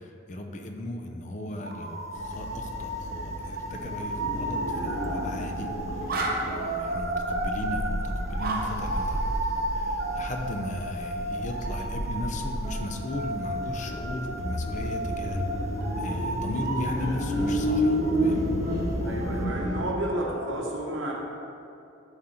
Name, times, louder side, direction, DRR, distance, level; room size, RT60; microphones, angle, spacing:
voice 1, 0.3-5.7 6.4-9.3 9.7-15.4 16.0-18.5, left 1 dB, 40° left, 4 dB, 0.6 m, -36 dB
sound 1, 1.6-20.5, right 1 dB, 50° right, 0.8 m, -34 dB
sound 2, 2.1-19.8, equal, 65° left, 0.9 m, -32 dB
sound 3, 2.3-3.1 3.3-16.9 17.1-17.4, right 1 dB, 15° right, 0.4 m, -37 dB
voice 2, 19.0-21.1, right 1 dB, 85° right, -2 dB, 1.3 m, -31 dB
10.5 x 3.8 x 4.4 m, 2.6 s
head